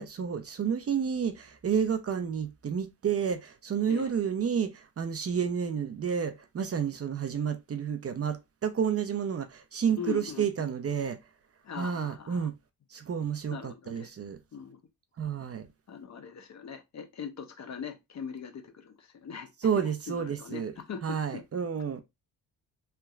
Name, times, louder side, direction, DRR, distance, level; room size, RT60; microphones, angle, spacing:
voice 1, 0.0-11.2 11.8-12.5 12.9-14.4 15.2-15.7 19.6-20.7 21.0-22.0, right 7 dB, 35° right, 0.6 m, -30 dB
voice 2, 9.9-10.7 11.6-12.5 13.5-14.1 14.5-14.8 15.9-21.4, left 6 dB, 45° left, 0.7 m, -41 dB
3.3 x 2.8 x 2.3 m
cardioid pair, 70°, 39 cm